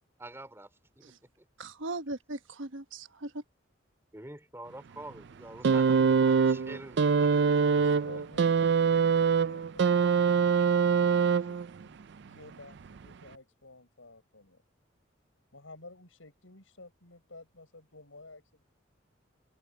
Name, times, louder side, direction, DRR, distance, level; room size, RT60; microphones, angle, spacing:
voice 1, 0.2-1.4 4.1-7.6, right 1 dB, 15° right, 3.6 m, -47 dB
voice 2, 1.6-3.4, right 2 dB, 75° right, 1.2 m, -38 dB
sound 1, 5.6-11.8 12.9-13.0, right 6 dB, 60° right, 0.4 m, -24 dB
voice 3, 7.7-14.6 15.5-18.6, left 2 dB, 85° left, 6.3 m, -53 dB
head